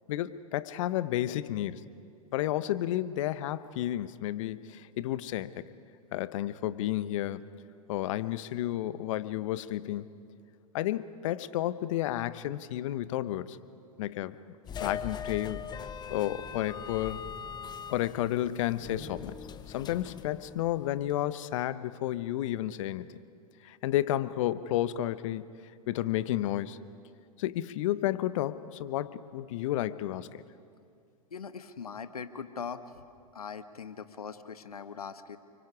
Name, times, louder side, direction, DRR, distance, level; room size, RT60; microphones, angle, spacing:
voice 1, 0.1-1.8 2.3-5.6 6.1-7.4 7.9-10.1 10.7-13.6 14.0-14.4 14.8-15.7 16.1-17.2 17.9-19.4 19.7-23.2 23.6-25.4 25.9-26.8 27.4-30.4, left 13 dB, 60° left, 15 dB, 0.8 m, -31 dB
sound 1, 14.6-21.2, left 7 dB, 20° left, 0.9 m, -41 dB
voice 2, 31.3-33.0 33.3-35.4, left 6 dB, 85° left, 11 dB, 1.1 m, -41 dB
29.5 x 24.5 x 4.9 m, 2.3 s
hypercardioid pair, 100°, 19 cm